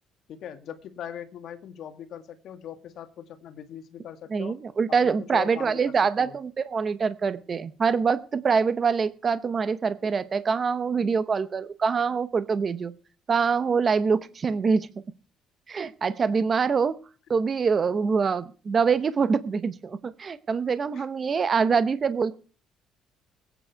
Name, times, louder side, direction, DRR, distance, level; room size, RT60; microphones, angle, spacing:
voice 1, 0.3-4.6 5.0-6.4 17.3-17.4 20.9-21.1, left 9 dB, 50° left, 8 dB, 1.7 m, -41 dB
voice 2, 4.3-12.9 13.3-14.9 15.7-17.0 17.3-22.3, right 5 dB, 25° right, 14 dB, 0.7 m, -25 dB
21.0 x 9.1 x 4.6 m, 0.39 s
cardioid pair, 180°, 0 cm